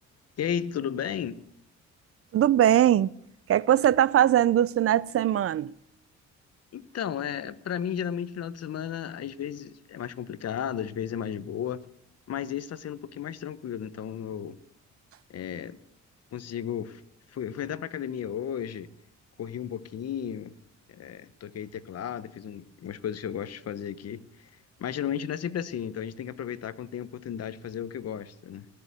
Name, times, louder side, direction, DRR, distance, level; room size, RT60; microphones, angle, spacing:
voice 1, 0.4-1.4 6.7-11.8 12.3-14.6 15.3-15.8 16.3-17.0 17.3-18.9 19.4-20.6 20.9-24.2 24.8-28.7, left 9 dB, 55° left, 0.9 m, -34 dB
voice 2, 2.3-3.1 3.5-5.7, right 11 dB, 50° right, 0.4 m, -21 dB
19.5 x 6.8 x 8.2 m
cardioid pair, 90°, 30 cm